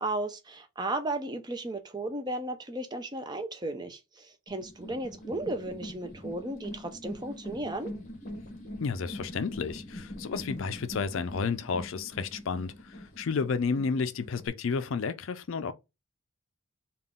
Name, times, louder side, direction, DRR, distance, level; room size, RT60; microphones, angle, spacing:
voice 1, 0.0-7.9, right 2 dB, 20° right, 0.4 m, -35 dB
sound 1, 4.5-14.5, left 1 dB, 35° left, 0.9 m, -43 dB
voice 2, 8.8-15.7, left 5 dB, 60° left, 0.4 m, -31 dB
3.7 x 2.3 x 3.5 m
head